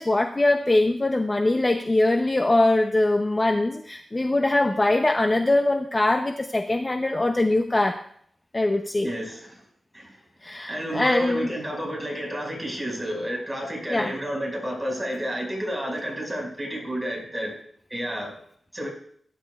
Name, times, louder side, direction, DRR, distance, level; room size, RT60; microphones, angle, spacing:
voice 1, 0.0-8.0 8.5-9.1 10.4-11.5 13.9-14.1, left 2 dB, 25° left, 5 dB, 0.6 m, -22 dB
voice 2, 9.0-9.5 9.9-10.2 10.7-17.5 17.9-18.3 18.7-18.9, equal, 10° right, -1 dB, 5.2 m, -30 dB
18.5 x 10.5 x 2.3 m, 0.62 s
wide cardioid pair, 120°, 0 cm